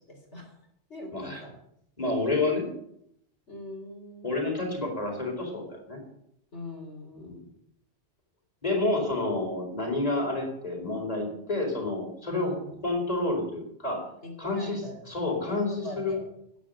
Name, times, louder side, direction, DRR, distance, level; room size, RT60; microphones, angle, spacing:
voice 1, 0.1-0.6 0.9-1.6 3.5-4.3 6.5-7.5 12.4-12.7 14.2-16.2, left 1 dB, 80° left, 0 dB, 4.0 m, -42 dB
voice 2, 2.0-2.7 4.2-6.0 7.2-7.4 8.6-12.5 12.8-14.0 14.4-14.8 15.1-16.1, left 2 dB, 35° left, 0 dB, 4.3 m, -29 dB
11.0 x 10.5 x 7.9 m, 0.73 s
omnidirectional pair, 1.2 m